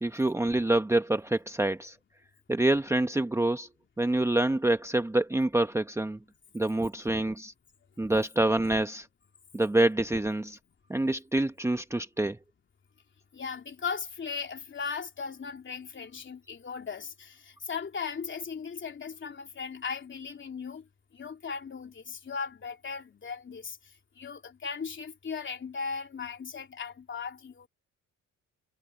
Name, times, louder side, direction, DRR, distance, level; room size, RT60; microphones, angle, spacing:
voice 1, 0.0-2.0 2.5-3.7 4.0-6.2 6.5-7.5 8.0-9.1 9.5-10.6 10.9-12.4, right 2 dB, 10° right, 0.9 m, -26 dB
voice 2, 13.3-20.9 21.1-27.7, left 5 dB, 40° left, 3.2 m, -37 dB
cardioid pair, 90°, 30 cm